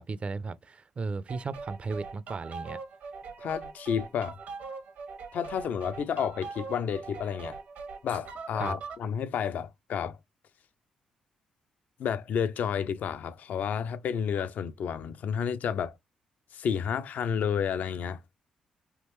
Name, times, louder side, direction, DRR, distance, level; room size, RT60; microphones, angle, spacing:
voice 1, 0.0-2.8 8.6-8.8, right 4 dB, 40° right, 0.4 m, -35 dB
sound 1, 1.3-9.1, right 4 dB, 70° right, 1.0 m, -42 dB
voice 2, 3.4-4.3 5.3-7.6 8.0-10.2 12.0-15.9 16.5-18.2, left 7 dB, 65° left, 0.4 m, -31 dB
3.5 x 2.5 x 3.0 m
hypercardioid pair, 50°, 3 cm